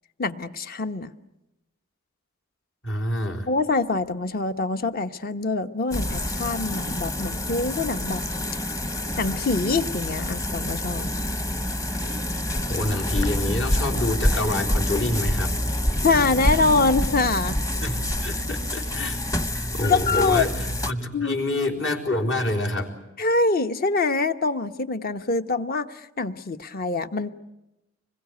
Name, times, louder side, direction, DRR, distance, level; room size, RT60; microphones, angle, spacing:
voice 1, 0.2-1.1 3.5-8.2 9.2-11.1 16.0-17.6 19.8-20.4 21.1-21.4 23.2-27.3, left 3 dB, 50° left, 10 dB, 1.1 m, -24 dB
voice 2, 2.8-3.5 12.7-15.5 17.8-19.2 19.5-23.0, left 1 dB, 65° left, 2 dB, 4.0 m, -27 dB
sound 1, 5.9-20.9, left 1 dB, 15° left, 1.0 m, -27 dB
26.0 x 22.0 x 9.5 m, 0.93 s
head